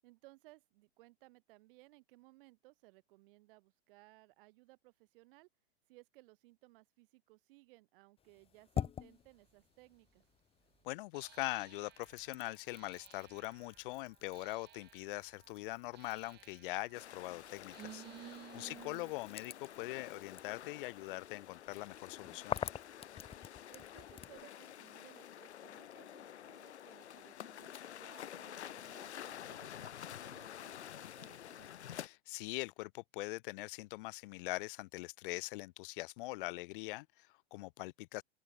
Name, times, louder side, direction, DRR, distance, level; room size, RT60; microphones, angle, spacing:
voice 1, 0.0-5.5 5.9-10.2 18.5-18.7 23.7-31.7, right 22 dB, 55° right, 7.3 m, -62 dB
sound 1, 8.2-10.8 11.2-24.4, left 8 dB, 15° left, 1.1 m, -48 dB
sound 2, 9.6-9.7 11.1-19.1, right 14 dB, 30° right, 2.9 m, -57 dB
voice 2, 10.8-22.6 32.0-38.2, left 21 dB, 50° left, 1.1 m, -42 dB
sound 3, 16.9-32.1, left 10 dB, 80° left, 1.9 m, -50 dB
open air
hypercardioid pair, 125°, 33 cm